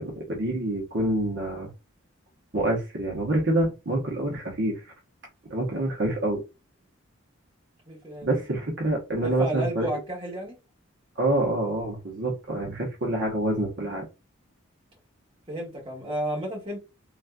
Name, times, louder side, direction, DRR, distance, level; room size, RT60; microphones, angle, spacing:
voice 1, 0.0-1.7 2.5-4.8 5.5-6.4 8.2-10.0 11.2-14.0, right 1 dB, 55° right, 0.9 m, -27 dB
voice 2, 7.9-8.3 9.2-10.6 15.5-16.8, right 1 dB, 25° right, 1.4 m, -32 dB
4.0 x 2.4 x 2.2 m
head